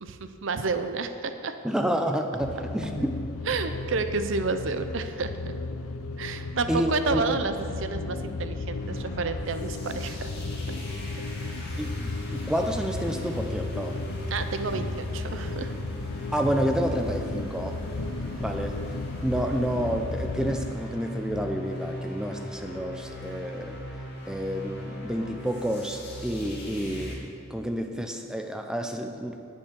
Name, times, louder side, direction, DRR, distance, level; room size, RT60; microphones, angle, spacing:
voice 1, 0.0-1.6 3.5-5.3 6.2-10.3 10.7-10.8 14.3-15.7, right 4 dB, 60° right, 9 dB, 0.6 m, -30 dB
voice 2, 1.6-3.6 6.7-7.4 11.8-14.0 16.3-17.9 18.4-18.8 19.2-23.8 24.3-29.5, equal, 5° right, 5 dB, 0.4 m, -29 dB
sound 1, 2.4-20.7, left 3 dB, 90° left, 0.5 m, -35 dB
sound 2, 8.8-27.2, equal, 50° left, 2.2 m, -39 dB
10.0 x 5.5 x 6.7 m, 2.6 s
head